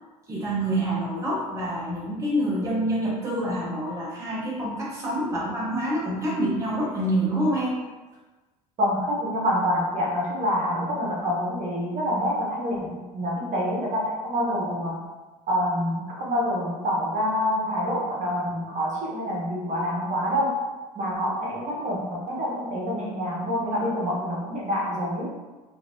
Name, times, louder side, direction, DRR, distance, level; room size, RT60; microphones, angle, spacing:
voice 1, 0.3-7.8, right 1 dB, 15° right, -6 dB, 0.7 m, -27 dB
voice 2, 8.8-15.0 15.5-20.6 20.9-25.3, equal, 40° right, -3 dB, 1.0 m, -27 dB
3.0 x 2.6 x 2.6 m, 1.2 s
hypercardioid pair, 70°, 19 cm